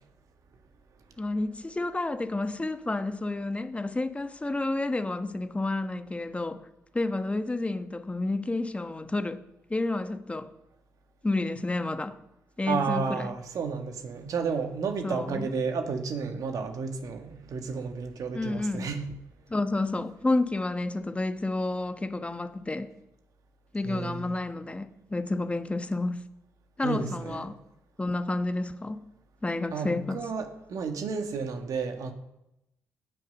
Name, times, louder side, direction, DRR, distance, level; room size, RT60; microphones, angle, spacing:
voice 1, 1.2-6.7 6.9-9.4 9.7-10.5 11.2-12.2 12.6-13.3 15.0-15.5 18.3-18.9 19.5-22.9 23.7-26.2 26.8-27.6 28.0-29.0 29.4-30.2, left 2 dB, 20° left, 1.2 m, -30 dB
voice 2, 12.7-19.1 23.8-24.3 26.8-27.4 29.7-32.1, right 5 dB, 60° right, 1.8 m, -32 dB
17.5 x 6.5 x 5.4 m
hypercardioid pair, 45°, 7 cm